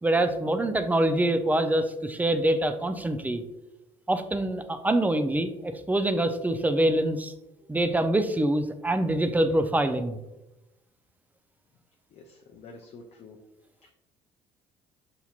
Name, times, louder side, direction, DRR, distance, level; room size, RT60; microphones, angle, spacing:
voice 1, 0.0-3.4 4.1-7.3 7.7-10.2, right 1 dB, 10° right, 9 dB, 0.5 m, -25 dB
voice 2, 12.1-13.4 13.8-13.9, left 3 dB, 50° left, 1 dB, 0.6 m, -48 dB
6.8 x 2.8 x 2.4 m, 0.94 s
hypercardioid pair, 65°, 14 cm